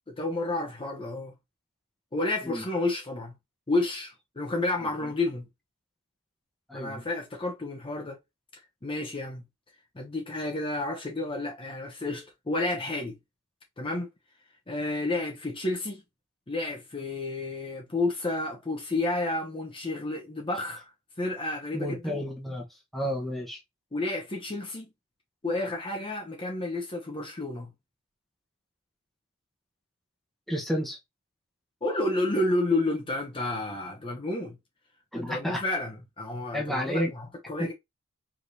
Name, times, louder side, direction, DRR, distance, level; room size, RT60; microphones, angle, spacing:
voice 1, 0.2-1.3 2.1-3.3 3.7-5.5 6.7-8.2 8.8-9.4 9.9-13.2 13.8-14.1 14.7-16.0 16.5-20.9 21.2-22.2 23.9-24.9 25.4-27.7 31.8-34.6 35.1-37.7, left 2 dB, 25° left, 0.9 m, -30 dB
voice 2, 6.7-7.0 21.7-22.6 22.9-23.6 30.5-31.0 35.1-35.6 36.5-37.1, equal, ahead, 1.1 m, -31 dB
4.9 x 3.6 x 2.7 m
head